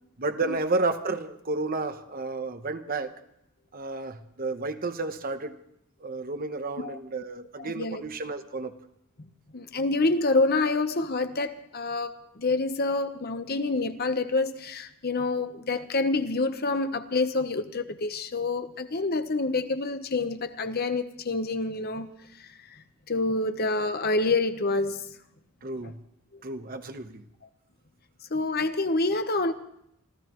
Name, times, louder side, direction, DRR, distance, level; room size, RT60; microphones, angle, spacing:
voice 1, 0.2-3.1 3.7-5.5 6.0-8.7 25.6-26.0 26.4-27.2, right 3 dB, 40° right, 1.0 m, -31 dB
voice 2, 7.6-8.0 9.5-22.1 22.4-22.8 23.1-25.1 28.3-29.5, left 3 dB, 45° left, 1.0 m, -27 dB
28.0 x 14.5 x 3.1 m
head